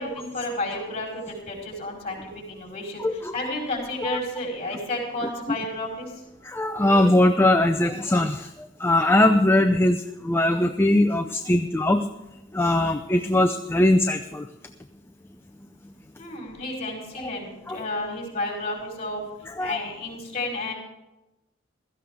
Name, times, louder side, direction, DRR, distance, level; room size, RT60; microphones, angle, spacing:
voice 1, 0.0-6.1 16.2-19.2 19.6-20.7, left 1 dB, 35° left, -1 dB, 4.4 m, -31 dB
voice 2, 3.0-3.3 4.0-4.2 6.4-12.1 12.5-14.5 17.7-17.8 19.6-19.8, left 1 dB, 10° left, 6 dB, 0.5 m, -21 dB
16.0 x 14.0 x 3.7 m, 0.95 s
head